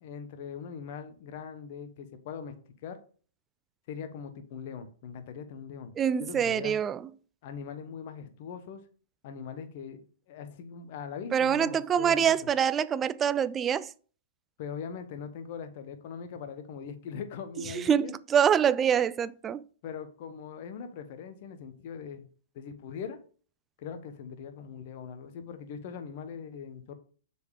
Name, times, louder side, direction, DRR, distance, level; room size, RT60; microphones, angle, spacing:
voice 1, 0.0-2.6 2.8-3.0 3.9-5.9 6.2-6.8 7.4-8.8 9.2-10.0 10.3-12.3 14.6-18.1 19.8-22.2 22.5-23.2 23.8-26.9, left 7 dB, 50° left, 1.1 m, -41 dB
voice 2, 6.0-7.1 11.3-13.9 17.7-19.6, right 8 dB, 20° right, 0.3 m, -25 dB
6.8 x 4.4 x 4.9 m
hypercardioid pair, 115°, 0 cm